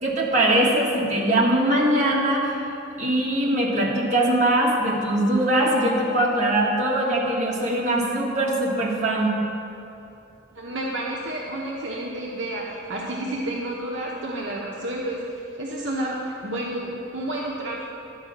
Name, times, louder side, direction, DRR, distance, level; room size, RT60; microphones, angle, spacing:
voice 1, 0.0-2.5 3.0-9.3, right 1 dB, 35° right, -4 dB, 1.5 m, -21 dB
voice 2, 10.5-17.9, right 1 dB, 65° right, -3 dB, 0.9 m, -30 dB
10.5 x 4.8 x 7.2 m, 2.7 s
head